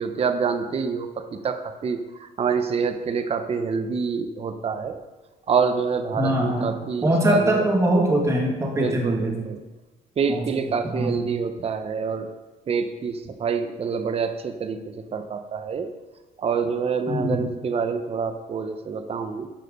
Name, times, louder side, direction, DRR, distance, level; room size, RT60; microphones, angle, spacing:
voice 1, 0.0-5.0 5.5-7.6 8.8-9.6 10.2-12.3 12.7-15.9 16.4-19.5, right 5 dB, 35° right, 8 dB, 0.9 m, -27 dB
voice 2, 6.1-6.7 7.0-9.4 10.3-10.4 10.9-11.1 17.1-17.4, right 1 dB, 15° right, -1 dB, 2.2 m, -22 dB
11.5 x 6.6 x 5.4 m, 1.1 s
cardioid pair, 110°, 17 cm